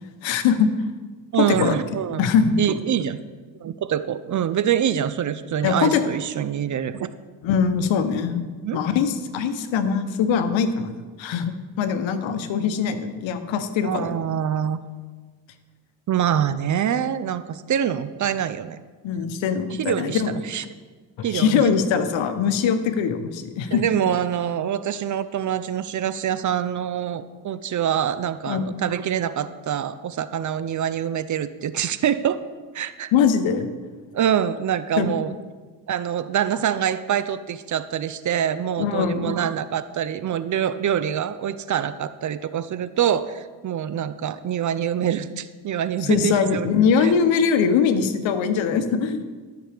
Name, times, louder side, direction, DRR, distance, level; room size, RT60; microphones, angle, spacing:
voice 1, 0.2-0.7 1.4-1.8 2.2-2.5 5.6-6.0 7.4-8.4 8.7-14.3 19.0-20.3 21.2-23.8 28.5-28.7 33.1-33.7 35.0-35.1 38.8-39.3 46.0-49.2, left 6 dB, 80° left, 10 dB, 0.9 m, -22 dB
voice 2, 1.3-2.2 2.6-3.2 3.6-7.1 8.6-8.8 13.8-14.8 16.1-18.8 19.8-20.6 21.2-21.7 23.7-32.4 32.7-33.1 34.1-35.3 35.9-46.7 47.0-47.1, right 9 dB, 40° right, 13 dB, 0.5 m, -25 dB
12.5 x 6.0 x 3.4 m, 1.4 s
cardioid pair, 75°, 45 cm